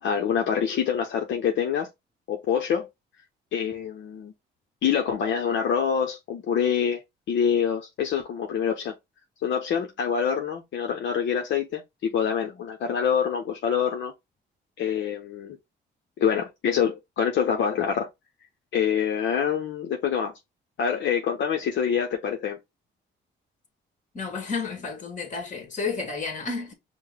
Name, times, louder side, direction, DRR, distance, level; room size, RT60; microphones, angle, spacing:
voice 1, 0.0-1.9 2.3-2.9 3.5-4.3 4.8-7.0 7.3-8.9 9.4-14.1 14.8-15.6 16.2-18.1 18.7-20.3 20.8-22.6, left 7 dB, 70° left, 0.8 m, -26 dB
voice 2, 24.1-26.7, left 4 dB, 40° left, 1.8 m, -31 dB
5.2 x 2.2 x 3.6 m
cardioid pair, 90°, 20 cm